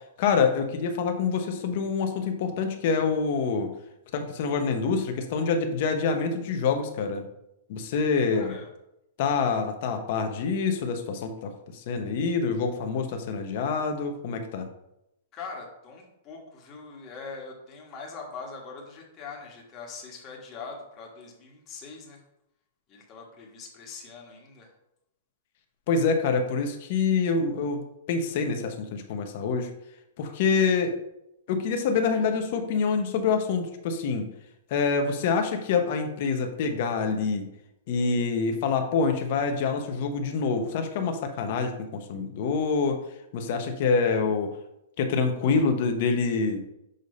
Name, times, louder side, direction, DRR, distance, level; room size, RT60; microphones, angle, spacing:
voice 1, 0.2-3.7 4.1-7.3 7.7-8.6 9.2-14.7 25.9-27.8 28.1-29.7 30.2-31.0 31.5-34.3 34.7-37.5 37.9-43.0 43.3-44.5 45.0-46.6, left 5 dB, 50° left, 5 dB, 0.9 m, -26 dB
voice 2, 8.3-8.7 15.3-22.2 22.9-24.7 30.5-30.6, left 4 dB, 25° left, -1 dB, 1.4 m, -42 dB
6.6 x 2.7 x 5.3 m, 0.84 s
hypercardioid pair, 160°, 0 cm